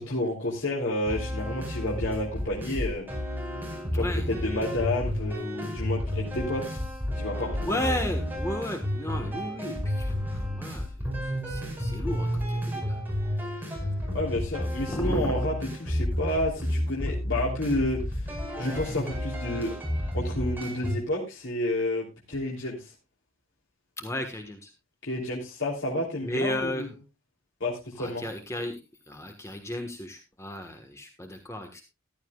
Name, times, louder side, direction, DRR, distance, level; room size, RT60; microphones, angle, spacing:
voice 1, 0.0-3.1 3.9-6.8 7.1-8.1 14.1-18.3 18.6-19.7 20.1-22.9 25.0-26.9 27.6-28.2, left 1 dB, 65° left, -4 dB, 3.1 m, -30 dB
sound 1, 1.1-21.0, equal, 10° right, 5.2 m, -31 dB
voice 2, 3.9-4.3 7.6-10.9 11.2-13.0 13.4-13.9 14.9-15.3 24.0-24.7 26.2-26.9 28.0-28.8 29.1-31.8, left 1 dB, 15° left, 4 dB, 1.4 m, -34 dB
14.5 x 13.5 x 2.4 m, 0.26 s
head